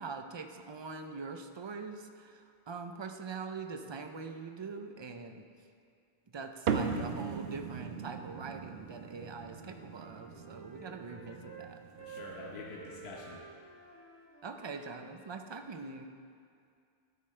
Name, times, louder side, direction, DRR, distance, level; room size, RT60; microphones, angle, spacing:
voice 1, 0.0-5.4 6.3-11.8 14.4-16.1, right 4 dB, 35° right, 5 dB, 0.5 m, -43 dB
sound 1, 6.7-13.4, right 6 dB, 75° right, 0.9 m, -39 dB
Wind instrument woodwind instrument, 8.8-11.7 12.0-15.3, right 4 dB, 25° left, 1.7 m, -52 dB
voice 2, 12.0-13.4, left 3 dB, 85° left, -3 dB, 1.3 m, -46 dB
13.0 x 9.4 x 3.3 m, 2.4 s
omnidirectional pair, 1.0 m